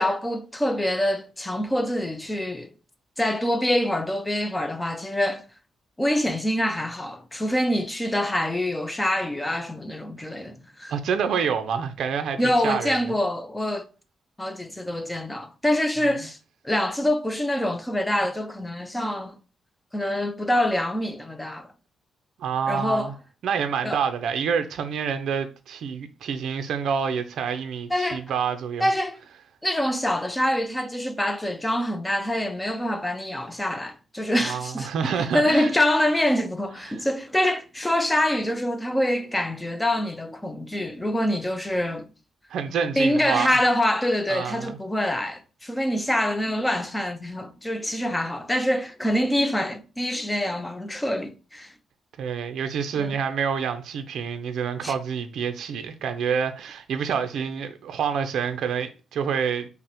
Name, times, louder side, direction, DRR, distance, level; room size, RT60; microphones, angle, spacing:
voice 1, 0.0-2.7 3.2-5.4 6.0-10.9 12.4-13.9 14.4-16.4 16.6-19.4 19.9-21.7 22.7-23.1 23.8-24.0 27.9-28.2 28.8-29.2 29.6-42.1 43.0-51.7 53.0-53.2 54.8-54.9, left 1 dB, 10° left, 0.3 m, -25 dB
voice 2, 10.9-13.0 22.4-23.1 23.4-28.9 34.4-35.7 36.9-37.1 42.5-43.6 44.3-44.8 52.2-59.7, right 7 dB, 65° right, 0.4 m, -27 dB
5.6 x 2.0 x 2.8 m
cardioid pair, 160°, 0 cm